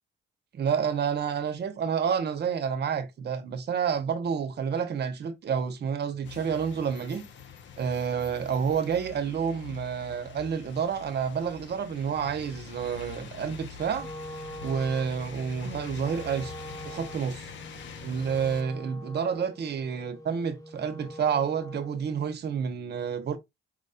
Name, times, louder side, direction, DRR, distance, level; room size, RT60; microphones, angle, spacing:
voice 1, 0.5-7.2 7.8-14.1 14.6-16.5 16.8-17.5 18.0-23.4, right 7 dB, 55° right, 1.2 m, -29 dB
sound 1, 6.2-18.6, left 6 dB, 70° left, 1.0 m, -45 dB
Wind instrument woodwind instrument, 13.9-22.1, equal, 15° left, 1.2 m, -43 dB
4.6 x 4.2 x 2.5 m
cardioid pair, 90°, 20 cm